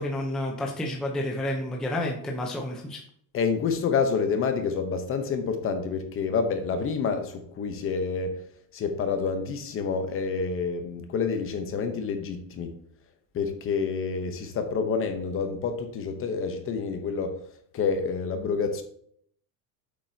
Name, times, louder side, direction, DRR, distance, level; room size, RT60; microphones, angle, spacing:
voice 1, 0.0-3.0, left 1 dB, ahead, 0.5 m, -30 dB
voice 2, 3.3-8.4 8.7-12.7 13.3-17.4 17.7-18.8, left 5 dB, 25° left, 0.8 m, -28 dB
8.4 x 7.7 x 2.7 m
cardioid pair, 165°, 49 cm